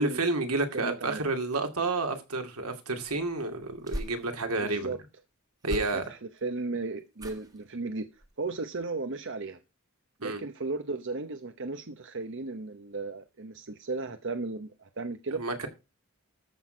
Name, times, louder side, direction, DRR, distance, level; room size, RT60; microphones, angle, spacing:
voice 1, 0.0-4.9 5.6-6.1 10.2-10.4 15.3-15.7, right 2 dB, 80° right, 2.3 m, -30 dB
voice 2, 0.7-1.2 4.6-5.0 5.7-8.1 8.4-9.6 10.2-15.4, right 3 dB, 55° right, 0.9 m, -35 dB
Katana sword, 3.6-4.7 5.6-6.4 7.1-7.7 8.1-8.5 8.8-8.9, equal, 15° right, 1.5 m, -41 dB
13.5 x 6.2 x 5.1 m
head